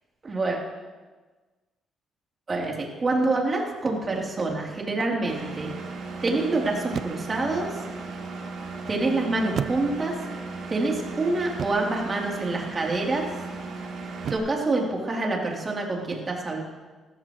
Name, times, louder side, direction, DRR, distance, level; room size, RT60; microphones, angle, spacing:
voice 1, 0.2-0.6 2.5-5.7 6.2-7.7 8.9-10.1 10.7-13.3 14.3-16.6, right 2 dB, 35° right, -1 dB, 3.4 m, -26 dB
sound 1, 4.5-4.8 6.9-7.5 9.6-10.3 11.6-12.0 14.2-14.7, right 8 dB, 60° right, 0.5 m, -34 dB
Engine, 5.3-14.4, right 3 dB, 80° right, 2.9 m, -36 dB
19.0 x 14.5 x 3.2 m, 1.3 s
cardioid pair, 90°, 0 cm